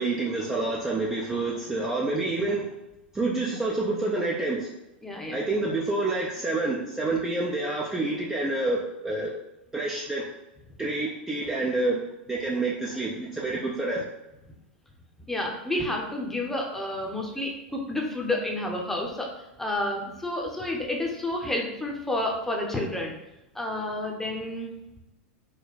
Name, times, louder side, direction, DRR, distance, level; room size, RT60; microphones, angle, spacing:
voice 1, 0.0-2.7 3.1-4.7 5.3-9.3 9.7-10.3 10.8-12.0 12.3-14.1, right 2 dB, 10° right, -4 dB, 0.6 m, -28 dB
voice 2, 5.0-5.4 15.3-19.3 19.6-23.1 23.5-24.7, left 1 dB, 5° left, -1 dB, 0.9 m, -30 dB
4.4 x 2.1 x 4.1 m, 0.92 s
hypercardioid pair, 100°, 6 cm